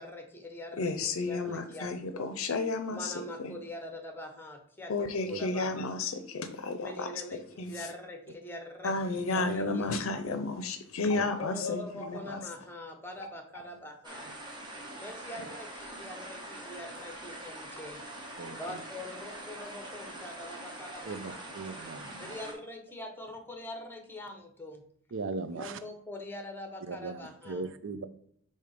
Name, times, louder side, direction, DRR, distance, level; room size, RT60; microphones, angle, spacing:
voice 1, 0.0-2.3 2.9-5.9 6.8-10.5 11.4-14.3 15.0-18.0 18.6-21.4 22.2-24.8 25.5-27.6, left 1 dB, 10° left, 4 dB, 1.0 m, -44 dB
voice 2, 0.8-3.6 4.9-7.9 8.8-12.4, left 3 dB, 70° left, 9 dB, 0.6 m, -32 dB
sound 1, 14.0-22.5, right 1 dB, 20° right, 1.2 m, -44 dB
voice 3, 18.4-18.8 21.0-22.4 25.1-25.8 26.8-28.1, right 4 dB, 65° right, 11 dB, 0.6 m, -39 dB
6.8 x 2.8 x 5.0 m, 0.64 s
head